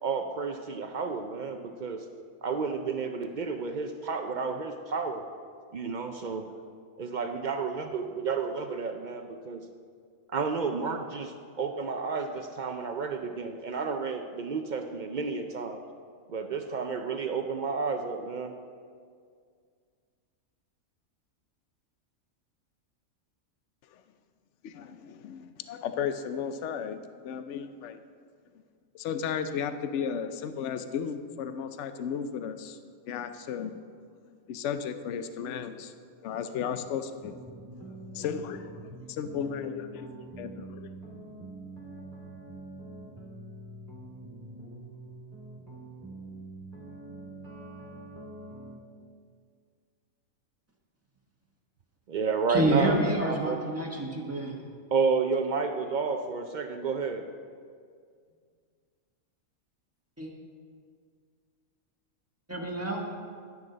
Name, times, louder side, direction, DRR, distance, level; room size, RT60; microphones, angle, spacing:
voice 1, 0.0-2.1 2.4-5.2 5.7-6.5 7.0-9.7 10.3-15.8 16.3-18.6 52.1-53.7 54.9-57.3, right 5 dB, 70° right, 6 dB, 0.4 m, -31 dB
voice 2, 24.6-28.0 28.9-32.8 33.1-33.8 34.5-35.9 36.2-37.4 38.1-38.7 39.1-40.1 40.4-40.9, left 7 dB, 65° left, 10 dB, 0.9 m, -34 dB
sound 1, 37.2-48.8, right 2 dB, 30° right, 2.0 m, -45 dB
voice 3, 52.5-54.5 60.2-60.3 62.5-63.0, right 1 dB, 10° right, -2 dB, 1.4 m, -28 dB
11.5 x 9.7 x 3.9 m, 2.1 s
omnidirectional pair, 1.4 m